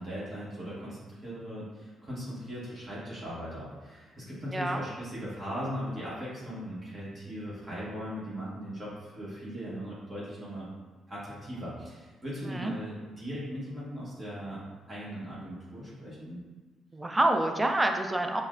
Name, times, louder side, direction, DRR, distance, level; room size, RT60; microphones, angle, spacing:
voice 1, 0.0-10.7 11.1-14.6 14.9-16.4, equal, 35° right, -8 dB, 1.2 m, -39 dB
voice 2, 16.9-18.4, right 1 dB, 15° right, 4 dB, 0.4 m, -27 dB
5.5 x 2.0 x 2.5 m, 1.3 s
cardioid pair, 90°, 0 cm